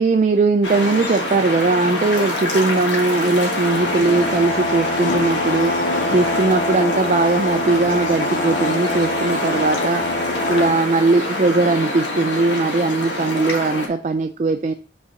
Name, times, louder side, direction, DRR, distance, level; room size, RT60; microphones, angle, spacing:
voice 1, 0.0-5.8 6.1-10.1 10.5-14.7, right 3 dB, 40° right, 0.3 m, -19 dB
sound 1, 0.6-13.9, left 1 dB, 80° left, 1.4 m, -26 dB
sound 2, 3.2-10.8, left 2 dB, 45° left, 0.6 m, -25 dB
5.4 x 4.0 x 4.8 m
head